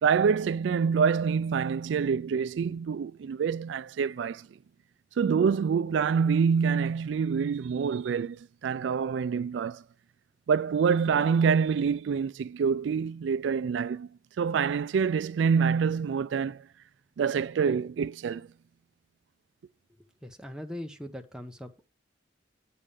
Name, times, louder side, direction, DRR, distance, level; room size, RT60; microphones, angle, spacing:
voice 1, 0.0-4.5 5.2-9.8 10.5-14.1 14.4-16.7 17.2-18.5, right 6 dB, 80° right, 0.3 m, -26 dB
voice 2, 20.2-21.9, left 1 dB, 5° right, 0.8 m, -40 dB
8.5 x 3.6 x 6.7 m
head